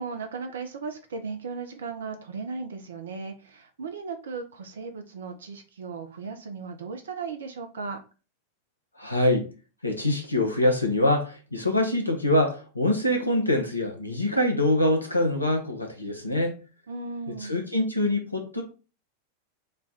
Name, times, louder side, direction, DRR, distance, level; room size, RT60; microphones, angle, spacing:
voice 1, 0.0-8.0 16.9-17.6, right 4 dB, 65° right, 0.5 m, -36 dB
voice 2, 9.0-9.5 9.8-16.6 17.3-18.6, left 1 dB, 85° left, 0.8 m, -24 dB
3.3 x 2.2 x 3.9 m
figure-of-eight pair, 90°, 0 cm